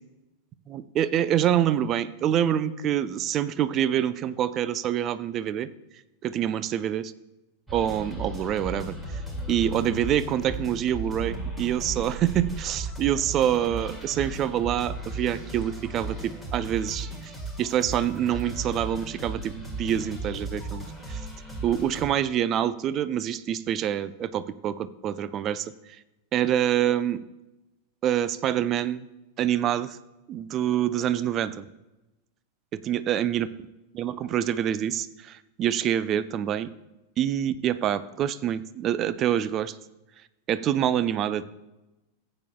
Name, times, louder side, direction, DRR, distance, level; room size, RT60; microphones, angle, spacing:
voice 1, 0.7-5.7 6.2-7.1 7.7-8.9 9.5-17.3 17.6-21.2 21.6-25.7 26.3-27.2 28.0-29.1 29.4-30.0 30.3-31.7 32.7-33.5 33.9-36.7 37.2-39.8 40.5-41.4, right 10 dB, 30° right, 14 dB, 0.5 m, -26 dB
sound 1, 7.7-22.1, right 2 dB, 10° right, 2.3 m, -36 dB
15.5 x 8.6 x 2.3 m, 1.0 s
figure-of-eight pair, 90°, 0 cm